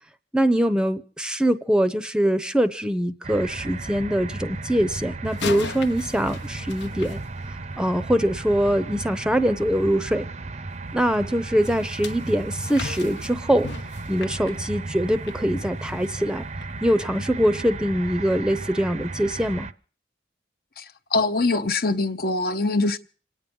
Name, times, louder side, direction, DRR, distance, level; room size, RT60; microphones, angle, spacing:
voice 1, 0.3-7.2 7.8-10.3 10.9-13.7 14.1-16.5 16.8-19.7, equal, 5° right, 0.7 m, -23 dB
sound 1, 3.2-19.7, right 3 dB, 40° right, 0.6 m, -35 dB
sound 2, 5.3-7.9 11.6-15.4 15.8-16.1 16.6-16.7, left 4 dB, 80° left, 1.1 m, -37 dB
voice 2, 21.1-23.0, left 3 dB, 55° left, 0.9 m, -23 dB
27.5 x 9.2 x 5.3 m
head